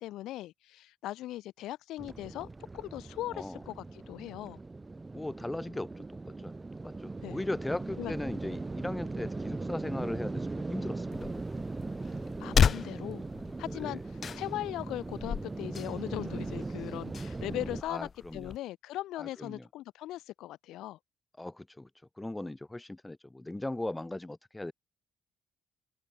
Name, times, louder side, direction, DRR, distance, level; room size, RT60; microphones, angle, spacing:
voice 1, 0.0-2.5 2.7-4.6 7.2-7.4 8.0-8.1 12.4-13.3 13.6-14.0 14.3-21.0, left 15 dB, 85° left, 3.2 m, -39 dB
sound 1, 2.0-17.8, right 3 dB, 15° right, 4.4 m, -39 dB
voice 2, 3.3-3.6 5.1-6.0 6.4-6.5 6.8-11.6 13.7-14.0 17.8-18.5 19.2-19.7 21.4-21.9 22.2-24.7, left 1 dB, 10° left, 3.6 m, -38 dB
sound 2, 11.1-18.6, left 7 dB, 35° left, 3.7 m, -34 dB
open air
cardioid pair, 155°, 0 cm